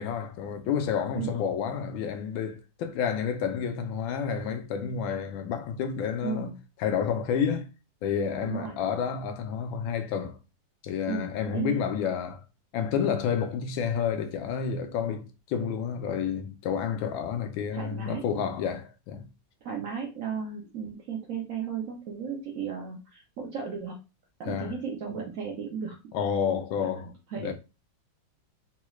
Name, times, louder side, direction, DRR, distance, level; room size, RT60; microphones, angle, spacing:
voice 1, 0.0-6.5 6.8-7.7 8.0-10.4 10.8-12.4 12.7-19.3 24.5-24.8 26.1-27.5, left 7 dB, 90° left, 1.4 m, -30 dB
voice 2, 6.2-6.6 8.3-8.7 11.1-11.8 17.7-18.2 19.6-23.9 24.4-26.0 27.3-27.5, right 6 dB, 80° right, 0.7 m, -35 dB
3.9 x 2.3 x 3.0 m
omnidirectional pair, 2.1 m